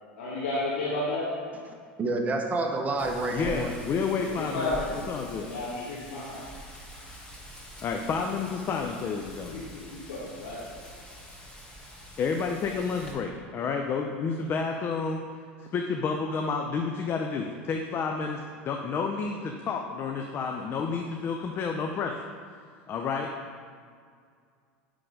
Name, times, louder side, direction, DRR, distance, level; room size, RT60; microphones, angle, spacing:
voice 1, 0.2-1.3 4.2-4.9 5.4-6.4 9.5-10.8, left 2 dB, 90° left, -9 dB, 1.9 m, -32 dB
voice 2, 1.7-3.7, right 2 dB, 25° right, 2 dB, 1.1 m, -29 dB
Wind, 3.0-13.1, equal, 10° left, 1.8 m, -45 dB
voice 3, 3.3-5.5 7.8-9.6 12.2-15.2 15.6-22.2 22.9-23.3, left 5 dB, 40° left, 2 dB, 0.6 m, -30 dB
9.8 x 3.8 x 5.0 m, 2.1 s
hypercardioid pair, 100°, 6 cm